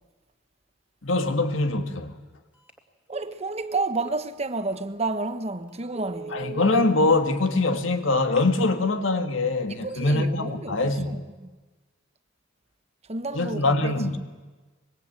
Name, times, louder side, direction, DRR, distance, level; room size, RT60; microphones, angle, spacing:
voice 1, 1.0-2.2 6.3-11.2 13.3-14.2, left 2 dB, 70° left, 2.0 m, -23 dB
Telephone, 2.5-2.8 3.1-4.2 4.7-4.8 5.3-5.4 5.8-6.9 8.1-8.8, right 4 dB, 5° right, 2.3 m, -39 dB
voice 2, 3.1-6.6 9.7-11.5 13.1-13.9, right 3 dB, 30° right, 1.2 m, -31 dB
24.5 x 22.0 x 9.0 m
head